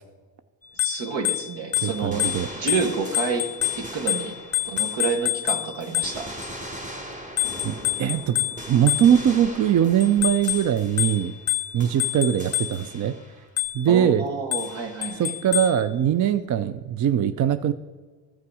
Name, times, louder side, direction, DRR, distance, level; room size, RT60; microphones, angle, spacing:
Bicycle bell, 0.6-6.5 7.4-9.5 10.0-13.0 13.6-14.0 14.5-15.9, left 12 dB, 30° left, 0.7 m, -28 dB
voice 1, 0.8-2.3 2.5-3.5 3.7-4.4 4.6-6.3 13.9-15.3, right 5 dB, 65° right, 5 dB, 1.6 m, -29 dB
sound 1, 1.8-5.5 5.8-11.5 11.8-13.5 14.6-15.3, equal, 15° right, 1.5 m, -40 dB
voice 2, 1.8-2.5 7.6-11.3 11.7-13.2 13.7-14.2 15.2-17.7, right 9 dB, 40° right, 12 dB, 0.5 m, -21 dB
14.0 x 5.7 x 4.8 m, 1.4 s
supercardioid pair, 70°, 48 cm